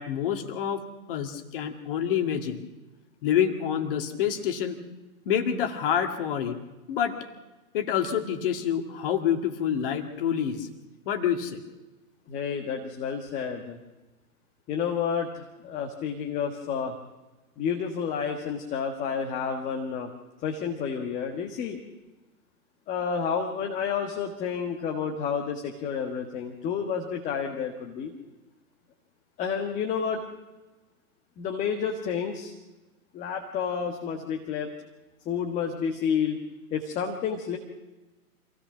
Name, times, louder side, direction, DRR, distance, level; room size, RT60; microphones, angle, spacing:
voice 1, 0.0-2.6 3.2-4.8 5.3-6.6 6.9-7.2 7.7-10.7 11.1-11.6, left 9 dB, 35° left, 6 dB, 2.2 m, -27 dB
voice 2, 12.3-13.8 14.7-16.9 17.6-20.1 20.4-21.8 22.9-28.1 29.4-30.2 31.4-32.5 33.1-34.7 35.2-36.4 36.7-37.6, left 7 dB, 15° left, 3 dB, 1.5 m, -30 dB
26.0 x 17.0 x 6.1 m, 1.1 s
figure-of-eight pair, 125°, 45 cm